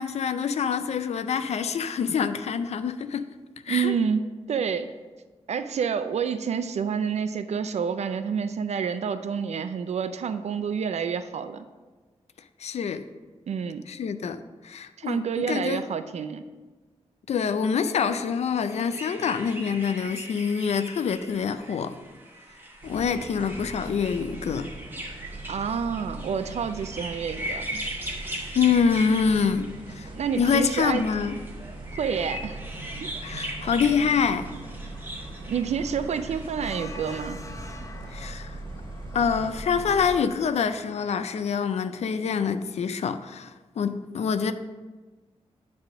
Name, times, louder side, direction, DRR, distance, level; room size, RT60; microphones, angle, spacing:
voice 1, 0.0-3.3 3.6-3.9 12.6-13.1 13.9-14.4 14.6-15.8 17.3-21.9 22.8-24.7 28.5-30.1 30.4-31.4 33.2-34.5 38.1-38.6 39.1-44.5, left 6 dB, 70° left, 0.4 m, -26 dB
voice 2, 3.7-4.9 5.5-11.6 13.5-13.8 15.0-16.4 25.5-27.8 30.1-31.0 32.0-32.6 33.0-33.1 35.5-37.4, right 6 dB, 75° right, 0.4 m, -28 dB
sound 1, 18.6-36.5, equal, 20° right, 1.1 m, -39 dB
sound 2, 22.8-40.2, right 2 dB, 45° right, 0.8 m, -40 dB
sound 3, 32.0-41.5, left 2 dB, 30° left, 0.6 m, -48 dB
9.0 x 3.5 x 5.9 m
wide cardioid pair, 145°, 12 cm